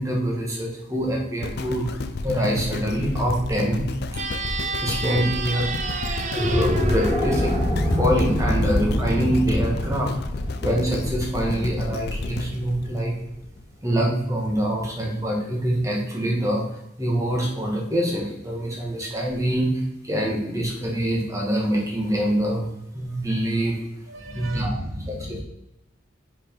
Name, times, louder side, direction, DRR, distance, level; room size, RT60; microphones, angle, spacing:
voice 1, 0.0-1.9 2.2-3.8 4.8-5.7 6.4-7.6 7.9-10.2 10.6-13.1 13.8-16.6 17.0-23.7 24.3-24.8 25.3-25.4, right 1 dB, 15° right, -2 dB, 1.5 m, -25 dB
sound 1, 1.4-13.6 14.2-14.3, left 3 dB, 55° left, 0.4 m, -31 dB
sound 2, 4.1-8.6, right 4 dB, 40° right, 0.6 m, -31 dB
sound 3, 6.2-12.6, left 1 dB, 5° left, 0.7 m, -25 dB
voice 2, 24.1-25.4, right 1 dB, 75° right, 4 dB, 1.0 m, -35 dB
6.5 x 4.9 x 3.8 m, 0.87 s
head